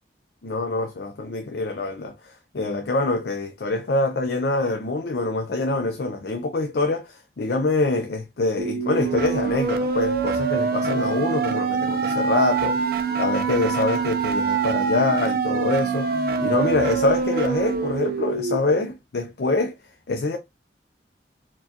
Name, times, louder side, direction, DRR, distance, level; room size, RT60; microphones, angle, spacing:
voice 1, 0.4-19.7 20.1-20.4, left 2 dB, 60° left, 0.5 m, -25 dB
sound 1, 8.6-18.6, right 5 dB, 55° right, 0.5 m, -24 dB
4.5 x 2.3 x 2.8 m
head